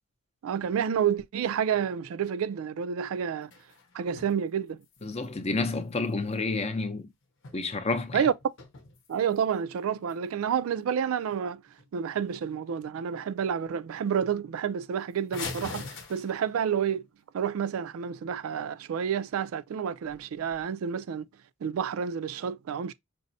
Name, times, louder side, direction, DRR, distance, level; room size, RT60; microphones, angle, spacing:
voice 1, 0.4-3.5 3.9-4.8 8.1-8.3 9.1-11.6 11.9-17.0 17.3-21.3 21.6-22.9, right 7 dB, 80° right, 0.3 m, -29 dB
sound 1, 3.1-4.4 4.7-6.7 7.2-7.9 8.2-9.6 10.1-10.2 10.6-10.8 11.2-11.4 11.7-12.1 12.5-13.0 13.4-13.5 13.8-13.9 14.2-14.3 15.3-16.7 20.0-20.6, left 4 dB, 60° left, 0.8 m, -44 dB
voice 2, 5.0-7.1 7.5-8.2, left 3 dB, 30° left, 0.5 m, -30 dB
5.2 x 2.1 x 2.6 m
head